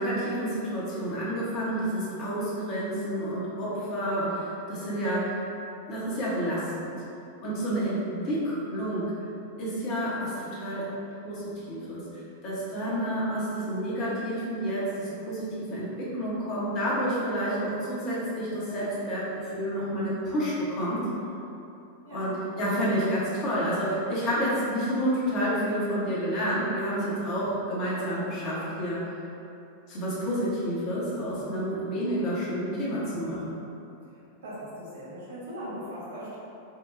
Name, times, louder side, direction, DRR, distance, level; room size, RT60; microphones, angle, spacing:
voice 1, 0.0-5.4 5.9-6.9 7.4-9.1 9.6-10.9 11.2-12.0 12.4-21.0 22.1-29.0 29.9-33.6, equal, 40° left, -7 dB, 0.9 m, -29 dB
voice 2, 34.4-36.4, equal, 60° right, -8 dB, 1.2 m, -39 dB
5.6 x 2.3 x 2.5 m, 2.8 s
figure-of-eight pair, 90°, 0 cm